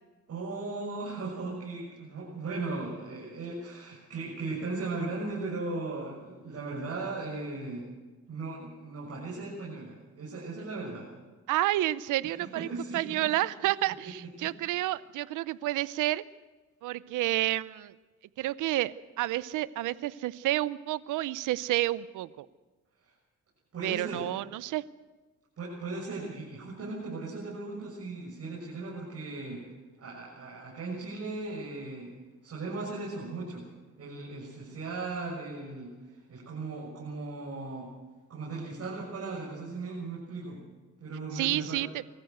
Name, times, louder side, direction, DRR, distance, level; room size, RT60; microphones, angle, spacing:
voice 1, 0.3-7.8 8.3-11.1 12.2-13.3 13.9-14.1 14.4-14.5 23.0-23.1 23.7-24.2 25.6-29.6 30.0-32.1 32.4-33.6 34.0-37.9 38.3-40.6 41.0-41.8, right 3 dB, 55° right, -4 dB, 6.9 m, -37 dB
voice 2, 11.5-12.7 12.9-16.2 16.8-17.9 18.4-22.5 23.8-24.8 41.3-41.9, right 16 dB, 85° right, 18 dB, 0.7 m, -30 dB
23.5 x 14.5 x 8.0 m, 1.3 s
cardioid pair, 90°, 30 cm